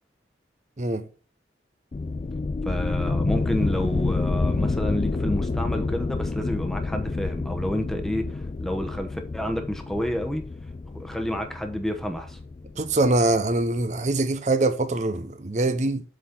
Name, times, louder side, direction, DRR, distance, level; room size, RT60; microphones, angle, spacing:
sound 1, 1.9-13.4, left 3 dB, 35° left, 0.3 m, -28 dB
voice 1, 2.6-10.4 10.9-12.4, equal, ahead, 0.9 m, -29 dB
voice 2, 12.8-16.0, right 2 dB, 40° right, 0.6 m, -23 dB
8.0 x 4.1 x 5.5 m
head